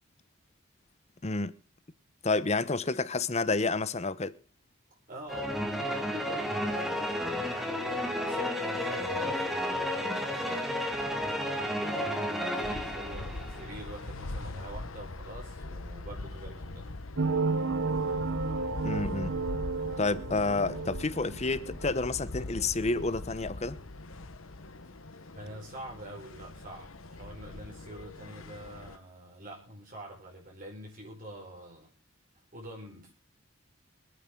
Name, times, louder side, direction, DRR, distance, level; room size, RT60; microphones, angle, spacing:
voice 1, 1.2-1.6 2.2-4.3 18.8-19.4 20.0-23.8, left 3 dB, 30° left, 0.9 m, -29 dB
voice 2, 5.1-16.9 25.3-31.9 32.5-33.1, right 1 dB, 40° right, 4.9 m, -46 dB
sound 1, 5.3-13.8, equal, ahead, 2.0 m, -32 dB
sound 2, 12.6-29.0, left 2 dB, 80° left, 1.2 m, -42 dB
sound 3, 17.2-22.1, right 4 dB, 65° right, 1.1 m, -32 dB
26.0 x 9.5 x 3.8 m
head